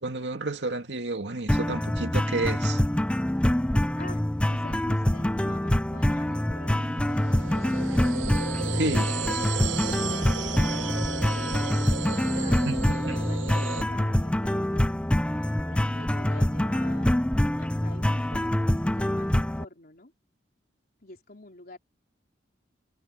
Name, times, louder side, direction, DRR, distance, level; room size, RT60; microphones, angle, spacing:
voice 1, 0.0-2.8 8.7-9.1 12.7-13.2, right 2 dB, 70° right, 2.4 m, -30 dB
sound 1, 1.5-19.6, left 1 dB, 5° left, 0.3 m, -25 dB
voice 2, 4.0-7.6 8.8-9.1 9.7-10.7 12.1-15.0 15.3-17.3 17.6-20.1 21.0-21.8, left 2 dB, 55° left, 3.8 m, -46 dB
sound 2, 5.9-13.8, right 7 dB, 85° right, 0.8 m, -35 dB
head